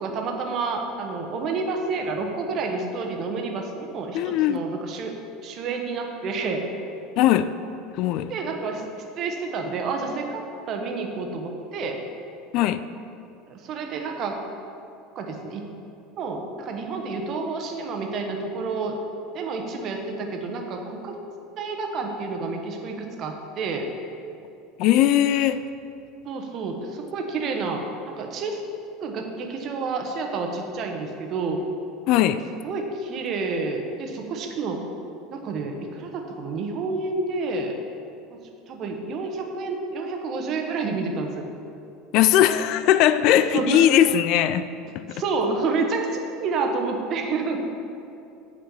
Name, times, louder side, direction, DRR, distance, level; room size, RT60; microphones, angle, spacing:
voice 1, 0.0-5.2 5.4-6.7 8.3-10.4 10.7-12.0 13.5-14.3 15.1-15.6 16.2-19.0 19.3-21.2 21.6-23.9 26.2-27.8 28.2-28.6 29.0-31.6 32.6-34.8 35.3-37.7 38.3-38.4 38.7-41.5 43.5-43.9 45.1-46.0 46.4-47.6, right 4 dB, 45° right, 3 dB, 1.3 m, -29 dB
voice 2, 4.1-4.7 7.2-7.5 7.9-8.3 12.5-12.8 24.8-25.7 32.1-32.4 42.1-44.7 44.9-45.2, left 11 dB, 55° left, 13 dB, 0.4 m, -19 dB
9.0 x 5.0 x 7.1 m, 2.7 s
hypercardioid pair, 75°, 0 cm